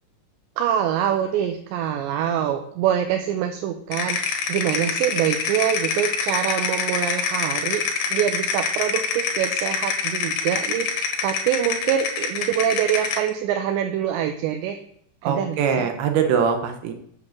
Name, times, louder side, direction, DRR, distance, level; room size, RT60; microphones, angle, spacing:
voice 1, 0.6-7.8 8.1-14.8 15.2-15.9, right 9 dB, 90° right, 5 dB, 3.0 m, -25 dB
sound 1, 3.9-13.3, left 5 dB, 65° left, 3.0 m, -26 dB
voice 2, 15.2-16.9, right 7 dB, 70° right, 6 dB, 2.7 m, -22 dB
8.1 x 5.4 x 7.1 m, 0.64 s
omnidirectional pair, 5.0 m